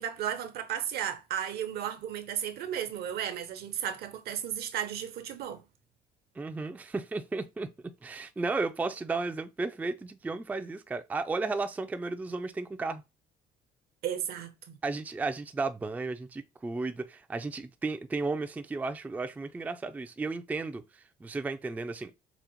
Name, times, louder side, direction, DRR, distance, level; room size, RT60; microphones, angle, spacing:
voice 1, 0.0-5.6 14.0-14.8, right 9 dB, 70° right, 0.7 m, -34 dB
voice 2, 6.4-7.7 8.0-13.0 14.8-22.2, right 3 dB, 10° right, 0.3 m, -34 dB
4.9 x 2.0 x 2.9 m
cardioid pair, 110°, 17 cm